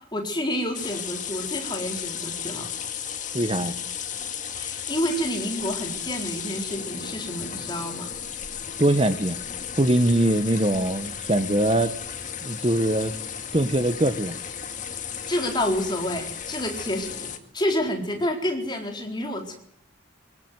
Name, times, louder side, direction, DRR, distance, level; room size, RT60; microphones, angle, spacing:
voice 1, 0.1-2.7 4.6-8.1 15.3-19.6, equal, 20° left, 2 dB, 4.2 m, -29 dB
sound 1, 0.7-17.4, left 8 dB, 40° left, 2.0 m, -34 dB
voice 2, 3.3-3.8 8.8-9.4 9.8-11.9 12.4-13.1 13.5-14.3, right 1 dB, 30° right, 9 dB, 1.2 m, -22 dB
24.0 x 16.5 x 9.4 m, 0.69 s
head